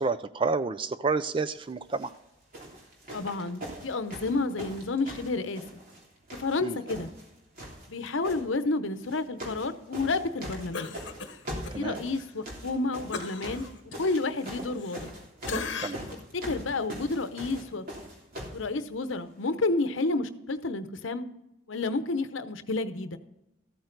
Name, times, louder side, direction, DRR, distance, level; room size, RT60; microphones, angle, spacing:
voice 1, 0.0-2.1 6.6-6.8 11.7-12.0 15.8-16.0, right 4 dB, 25° right, 13 dB, 0.4 m, -29 dB
sound 1, 1.9-2.1 2.5-6.0 6.3-7.3 7.5-8.4 9.0-9.7 9.9-18.6 19.4-19.5, equal, 45° right, 3.1 m, -41 dB
voice 2, 3.1-5.8 6.4-7.1 7.9-10.9 11.7-13.7 14.0-15.1 16.3-17.8 18.5-21.3 21.7-23.2, left 3 dB, 85° left, 11 dB, 0.8 m, -30 dB
Cough, 10.7-11.8 12.2-12.3 13.1-15.2 15.5-16.2 16.7-16.8, left 4 dB, 65° left, 1.1 m, -37 dB
14.0 x 8.8 x 4.0 m, 0.90 s
head